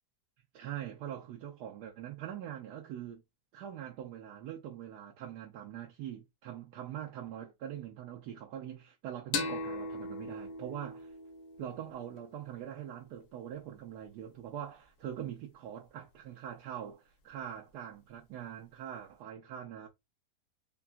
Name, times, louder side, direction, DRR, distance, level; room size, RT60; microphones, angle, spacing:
voice 1, 0.5-3.2 3.5-11.1 11.6-19.9, right 10 dB, 90° right, 1.2 m, -43 dB
sound 1, 9.3-12.7, left 3 dB, 75° left, 1.2 m, -39 dB
3.8 x 2.2 x 2.4 m
omnidirectional pair, 1.7 m